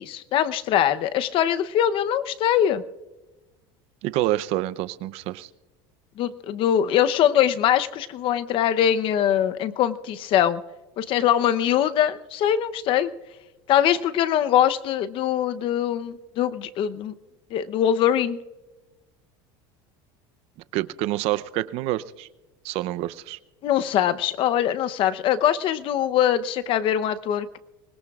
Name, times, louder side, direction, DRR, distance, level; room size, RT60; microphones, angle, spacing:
voice 1, 0.0-2.8 6.2-10.6 11.0-13.1 13.7-17.1 17.5-18.4 23.6-27.6, left 10 dB, 50° left, 12 dB, 0.8 m, -22 dB
voice 2, 4.0-5.5 20.7-22.3 22.6-23.4, right 15 dB, 60° right, 15 dB, 0.7 m, -27 dB
24.5 x 20.5 x 2.4 m, 1.1 s
supercardioid pair, 135°, 12 cm